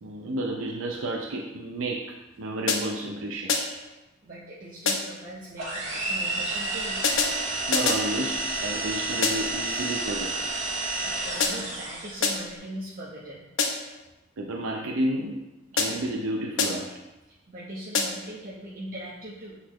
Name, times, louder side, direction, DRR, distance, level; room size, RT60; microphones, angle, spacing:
voice 1, 0.0-3.7 7.7-10.4 14.4-15.4 15.7-16.9, right 1 dB, 80° right, -1 dB, 0.6 m, -31 dB
sound 1, 2.7-3.1 3.5-3.9 4.9-5.3 7.0-8.1 9.2-9.6 11.4-11.8 12.2-12.6 13.6-14.0 15.8-16.2 16.6-17.0 17.9-18.4, left 4 dB, 70° left, 0.8 m, -27 dB
voice 2, 3.9-7.0 10.9-13.4 15.7-15.8 17.5-19.6, right 1 dB, 45° right, -7 dB, 0.9 m, -40 dB
sound 2, 5.6-12.3, right 2 dB, 65° right, 2.2 m, -30 dB
8.0 x 4.2 x 3.0 m, 1.0 s
head